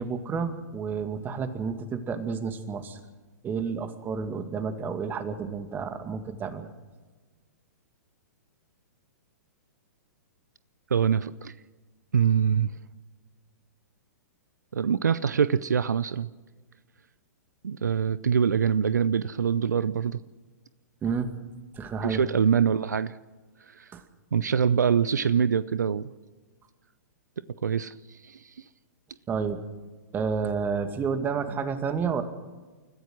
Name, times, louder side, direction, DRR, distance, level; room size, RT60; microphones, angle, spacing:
voice 1, 0.0-3.0 3.4-6.7 21.0-21.3 21.7-22.2 23.9-24.0 29.3-29.6 30.1-32.2, right 5 dB, 20° right, 8 dB, 2.2 m, -30 dB
voice 2, 10.9-11.5 12.1-12.7 14.7-16.3 17.6-20.2 22.0-23.1 23.8-23.9 24.3-26.1 27.6-28.5, right 7 dB, 75° right, 17 dB, 0.6 m, -24 dB
29.5 x 14.5 x 6.3 m, 1.3 s
figure-of-eight pair, 115°, 9 cm